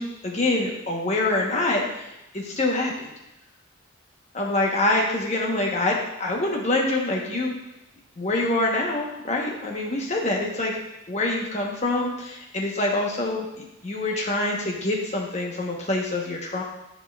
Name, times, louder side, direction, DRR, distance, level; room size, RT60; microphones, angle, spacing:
voice 1, 0.0-1.8 2.3-3.1 4.3-7.5 8.2-10.7 11.1-16.6, left 2 dB, 35° left, -1 dB, 1.0 m, -25 dB
10.0 x 4.3 x 2.3 m, 0.90 s
head